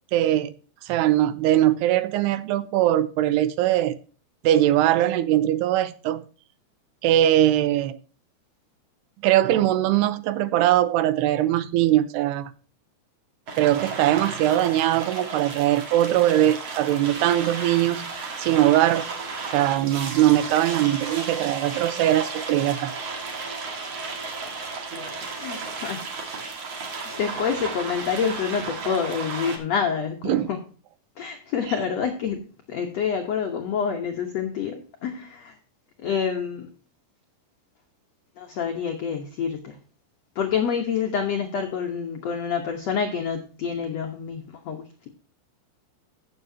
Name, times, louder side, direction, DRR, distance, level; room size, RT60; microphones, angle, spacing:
voice 1, 0.1-0.5 0.8-4.0 4.4-6.2 7.0-8.0 9.2-12.5 13.5-18.1 18.4-19.1 19.5-22.9 30.2-30.5, right 13 dB, 85° right, 2.8 m, -21 dB
sound 1, 13.5-29.6, right 4 dB, 45° right, 2.4 m, -34 dB
voice 2, 25.3-26.1 27.2-30.6 31.2-35.6 36.0-36.7 38.4-39.8 40.3-45.1, left 7 dB, 75° left, 1.5 m, -27 dB
15.0 x 7.5 x 2.8 m
omnidirectional pair, 4.7 m